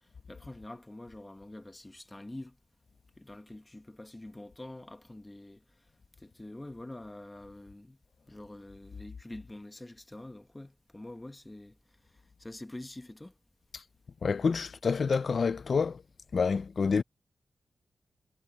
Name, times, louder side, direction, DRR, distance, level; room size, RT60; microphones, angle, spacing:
voice 1, 0.3-2.5 3.2-5.6 6.2-8.0 8.3-11.7 12.4-13.3, left 1 dB, 15° left, 1.2 m, -46 dB
voice 2, 14.2-16.0 16.3-17.0, left 5 dB, 55° left, 0.4 m, -27 dB
wide cardioid pair, 130°, 0 cm